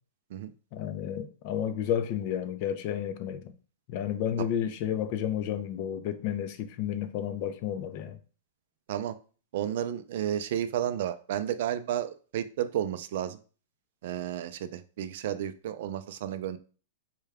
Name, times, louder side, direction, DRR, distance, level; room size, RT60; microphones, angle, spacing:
voice 1, 0.7-3.4 3.9-8.2, left 9 dB, 45° left, 0.5 m, -31 dB
voice 2, 9.5-13.4 14.0-16.6, right 10 dB, 60° right, 0.4 m, -32 dB
4.5 x 2.2 x 3.4 m
hypercardioid pair, 145°, 0 cm